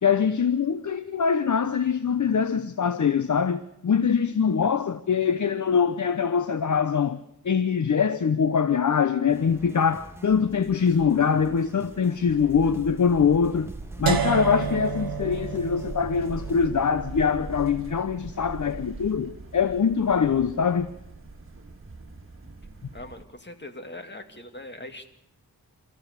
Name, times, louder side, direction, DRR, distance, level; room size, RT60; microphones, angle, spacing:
voice 1, 0.0-13.7 14.0-20.9, left 6 dB, 50° left, 0.8 m, -23 dB
sound 1, 9.3-16.7, right 1 dB, 5° right, 2.1 m, -46 dB
sound 2, 12.3-23.2, right 3 dB, 35° right, 2.5 m, -41 dB
sound 3, 14.1-20.0, right 6 dB, 65° right, 1.3 m, -32 dB
voice 2, 22.9-25.1, left 1 dB, 30° left, 2.4 m, -41 dB
28.0 x 14.5 x 6.7 m
wide cardioid pair, 75°, 38 cm